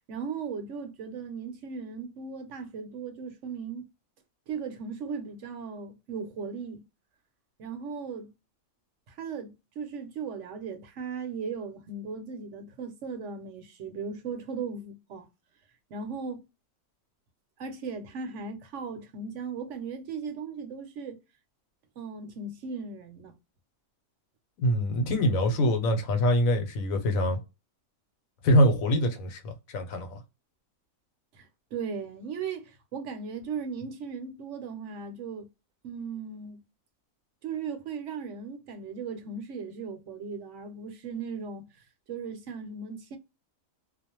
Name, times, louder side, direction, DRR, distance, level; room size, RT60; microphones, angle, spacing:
voice 1, 0.1-3.9 4.5-6.8 7.6-8.3 9.1-15.3 15.9-16.4 17.6-21.2 22.0-23.3 31.3-35.5 35.8-36.6 37.4-41.7 42.1-43.2, right 5 dB, 65° right, 0.9 m, -37 dB
voice 2, 24.6-27.4 28.4-30.2, equal, 85° left, 1.1 m, -24 dB
2.5 x 2.1 x 2.8 m
omnidirectional pair, 1.4 m